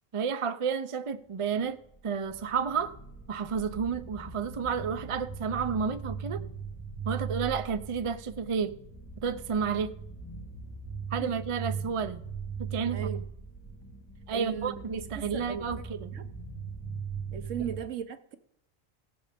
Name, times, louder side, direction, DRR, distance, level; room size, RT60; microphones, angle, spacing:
voice 1, 0.1-1.8 2.0-2.9 3.3-6.4 7.0-8.8 9.2-9.9 11.1-12.2 12.6-13.1 14.3-16.1, right 6 dB, 40° right, 0.5 m, -31 dB
sound 1, 1.4-17.8, right 5 dB, 10° left, 1.8 m, -40 dB
voice 2, 12.9-13.2 14.3-14.8 15.1-15.7 16.1-16.3 17.3-18.4, right 8 dB, 70° right, 1.2 m, -37 dB
17.0 x 7.1 x 5.1 m
omnidirectional pair, 1.4 m